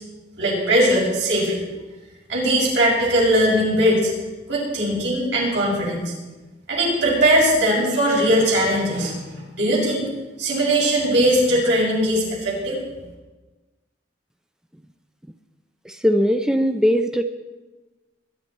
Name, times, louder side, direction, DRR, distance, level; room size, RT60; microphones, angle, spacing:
voice 1, 0.4-1.6 2.3-4.1 4.5-6.1 6.7-10.0 10.4-12.8, right 1 dB, 75° right, -4 dB, 6.7 m, -20 dB
voice 2, 15.9-17.2, equal, 5° right, 7 dB, 0.5 m, -19 dB
21.0 x 11.0 x 4.6 m, 1.2 s
head